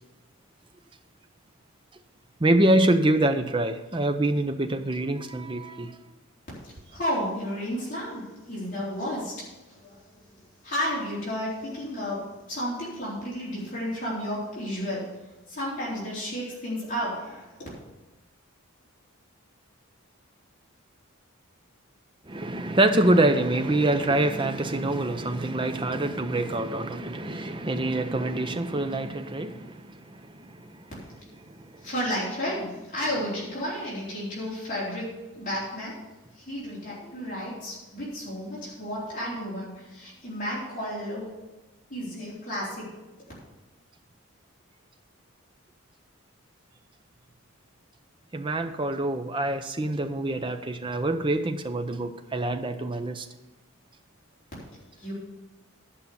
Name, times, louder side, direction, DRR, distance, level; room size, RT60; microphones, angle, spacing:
voice 1, 2.4-6.0 22.2-30.9 31.4-31.9 48.3-53.3, right 1 dB, 20° right, 7 dB, 0.6 m, -25 dB
voice 2, 6.9-9.3 9.7-10.0 10.6-12.2 12.5-15.0 15.5-17.7 31.8-35.1 35.3-36.0 36.4-41.3 41.9-42.8 55.0-55.1, equal, 35° left, -8 dB, 4.0 m, -32 dB
10.5 x 5.7 x 7.1 m, 1.1 s
head